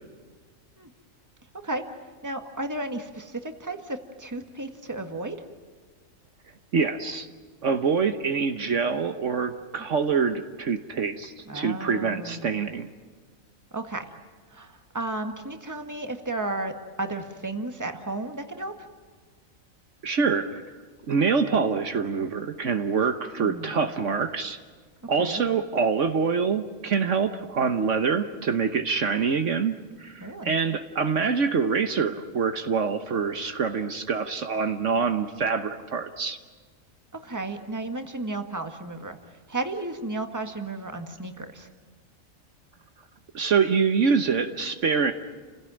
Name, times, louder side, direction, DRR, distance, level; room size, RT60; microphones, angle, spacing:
voice 1, 2.2-5.4 11.4-12.5 13.7-14.0 14.5-16.7 17.0-18.7 23.4-23.9 25.0-25.5 30.2-30.5 37.1-39.2 39.5-41.7, right 2 dB, 15° right, 6 dB, 1.6 m, -33 dB
voice 2, 6.7-7.3 7.6-12.9 20.0-20.6 21.1-24.6 25.1-36.4 43.3-45.1, right 5 dB, 65° right, 8 dB, 1.4 m, -25 dB
30.0 x 16.5 x 9.0 m, 1.5 s
omnidirectional pair, 1.4 m